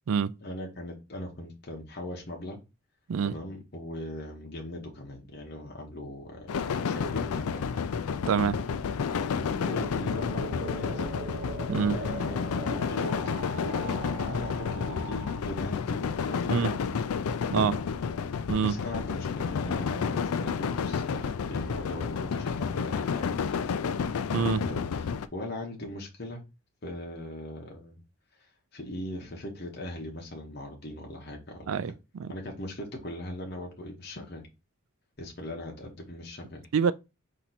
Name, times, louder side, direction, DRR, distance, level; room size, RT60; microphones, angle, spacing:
voice 1, 0.4-2.6 3.2-7.7 9.3-11.3 11.8-16.9 17.6-17.8 18.5-23.3 24.6-26.4 26.8-28.0 28.7-31.7 32.3-34.5 35.2-36.6, left 1 dB, 45° left, 1.0 m, -39 dB
sound 1, 6.2-15.4, right 2 dB, 45° right, 0.8 m, -42 dB
sound 2, 6.5-25.3, left 6 dB, 85° left, 0.4 m, -31 dB
voice 2, 8.3-8.6 11.7-12.0 16.5-16.7 17.5-17.8 18.5-18.8 24.3-24.6 31.7-31.9 32.2-32.3 36.7-36.9, right 6 dB, 70° right, 0.4 m, -25 dB
4.4 x 2.9 x 4.0 m
head